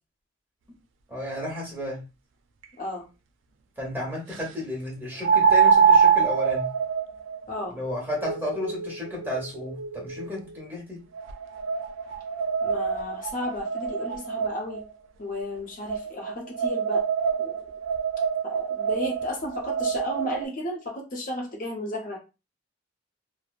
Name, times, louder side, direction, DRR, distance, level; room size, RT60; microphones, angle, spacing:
voice 1, 1.1-2.0 3.8-6.7 7.7-11.0, left 1 dB, 10° right, -3 dB, 1.1 m, -33 dB
sound 1, 2.6-2.7 5.2-10.4 11.1-14.8 15.9-20.5, right 6 dB, 85° right, 0.4 m, -25 dB
voice 2, 2.8-3.1 7.5-7.8 12.6-14.8 15.2-17.1 17.4-17.5 18.4-22.2, left 1 dB, 45° left, -1 dB, 0.6 m, -33 dB
3.0 x 2.0 x 2.4 m, 0.29 s
head